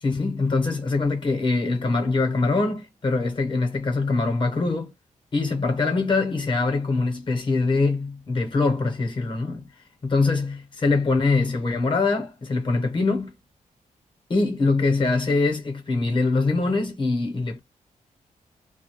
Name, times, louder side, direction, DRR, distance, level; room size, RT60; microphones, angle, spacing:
voice 1, 0.0-4.9 5.3-9.6 10.0-13.3 14.3-17.6, left 3 dB, 35° left, 0.7 m, -23 dB
2.2 x 2.0 x 2.9 m
wide cardioid pair, 155°, 13 cm